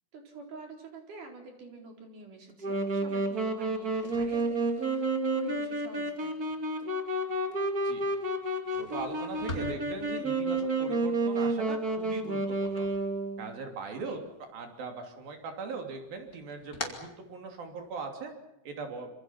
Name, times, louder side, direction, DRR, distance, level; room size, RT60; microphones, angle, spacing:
voice 1, 0.1-6.5 14.0-14.2, right 2 dB, 60° right, 3 dB, 5.8 m, -47 dB
Wind instrument woodwind instrument, 2.6-13.5, right 2 dB, 30° right, 2.6 m, -30 dB
sound 1, 3.8-13.8 14.1-15.0 15.4-18.0, left 2 dB, 25° left, 3.4 m, -46 dB
voice 2, 8.7-12.9 13.4-14.2 14.5-18.3 18.6-19.1, right 4 dB, 80° right, 4 dB, 4.7 m, -40 dB
27.0 x 26.0 x 5.9 m, 0.89 s
omnidirectional pair, 4.1 m